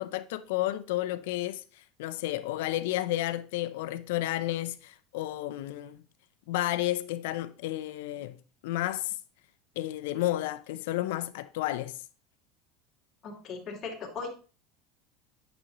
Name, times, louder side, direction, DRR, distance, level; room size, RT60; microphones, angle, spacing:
voice 1, 0.0-6.0 6.5-8.4 8.6-9.2 9.8-12.0, left 15 dB, 85° left, 0.5 m, -32 dB
voice 2, 13.2-14.3, left 4 dB, 35° left, 2.5 m, -38 dB
8.7 x 6.2 x 3.0 m
supercardioid pair, 130°, 0 cm